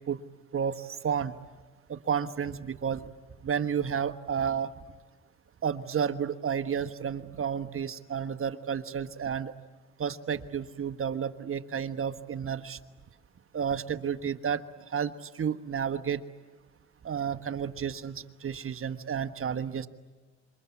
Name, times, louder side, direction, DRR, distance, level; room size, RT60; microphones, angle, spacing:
voice 1, 0.5-1.3 1.9-3.1 3.4-4.7 5.6-9.5 10.0-12.8 13.5-14.6 14.9-16.2 17.0-19.9, right 7 dB, 45° right, 9 dB, 1.3 m, -31 dB
27.0 x 24.5 x 8.4 m, 1.3 s
cardioid pair, 90°, 30 cm